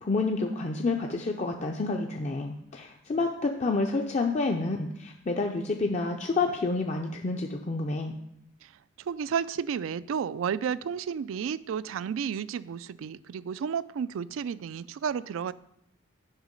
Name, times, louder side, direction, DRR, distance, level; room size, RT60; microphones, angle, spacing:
voice 1, 0.0-8.2, left 3 dB, 35° left, 2 dB, 0.4 m, -29 dB
voice 2, 9.1-15.5, right 7 dB, 80° right, 17 dB, 0.3 m, -32 dB
8.0 x 5.6 x 5.2 m, 0.78 s
head